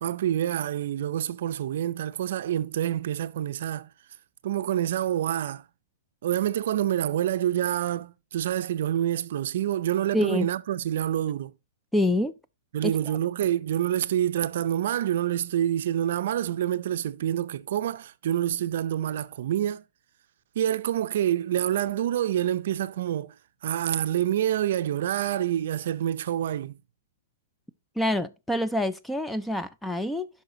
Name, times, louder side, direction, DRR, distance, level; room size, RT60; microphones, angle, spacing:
voice 1, 0.0-3.9 4.4-5.6 6.2-11.5 12.7-19.8 20.6-23.3 23.6-26.7, right 11 dB, 55° right, 0.5 m, -27 dB
voice 2, 10.1-10.5 11.9-12.4 12.8-13.2 28.0-30.3, left 1 dB, ahead, 0.3 m, -26 dB
10.5 x 5.7 x 2.7 m
hypercardioid pair, 165°, 0 cm